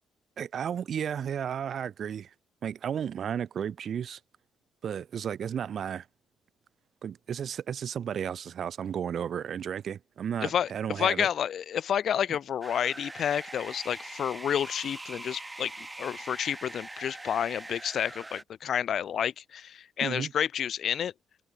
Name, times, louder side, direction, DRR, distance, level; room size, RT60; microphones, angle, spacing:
voice 1, 0.4-2.3 2.6-4.2 4.8-6.0 7.0-11.3 20.0-20.3, right 8 dB, 60° right, 1.5 m, -33 dB
voice 2, 10.4-15.7 16.0-21.1, left 9 dB, 60° left, 0.4 m, -30 dB
sound 1, 12.6-18.4, right 2 dB, 15° right, 2.3 m, -43 dB
cardioid pair, 90°, 0 cm